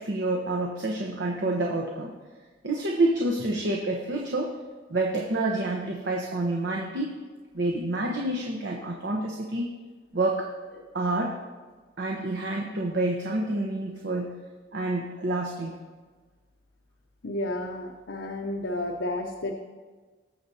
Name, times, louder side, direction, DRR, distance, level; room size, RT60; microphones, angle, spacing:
voice 1, 0.0-2.1 2.6-4.5 4.9-7.2 7.5-9.7 10.1-10.5 10.9-11.4 12.0-14.3 14.7-15.8, right 2 dB, 80° right, 0 dB, 1.0 m, -28 dB
voice 2, 17.2-19.5, left 1 dB, 85° left, 1 dB, 0.8 m, -32 dB
19.5 x 6.7 x 2.8 m, 1.4 s
head